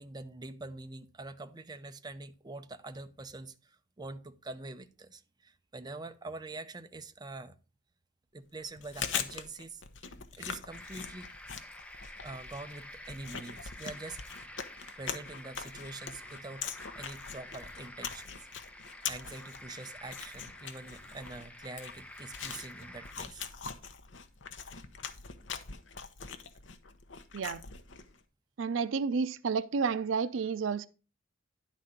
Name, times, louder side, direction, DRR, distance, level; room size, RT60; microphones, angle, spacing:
voice 1, 0.0-7.6 8.3-9.8 10.4-11.3 12.2-14.5 15.0-16.7 17.0-18.3 19.1-23.5, right 2 dB, 20° right, 0.6 m, -45 dB
Chewing mastication, 8.7-28.2, left 7 dB, 70° left, 0.9 m, -42 dB
sound 1, 10.7-23.1, left 1 dB, 5° left, 0.9 m, -49 dB
voice 2, 28.6-30.9, right 5 dB, 85° right, 0.5 m, -31 dB
10.5 x 4.1 x 5.0 m
head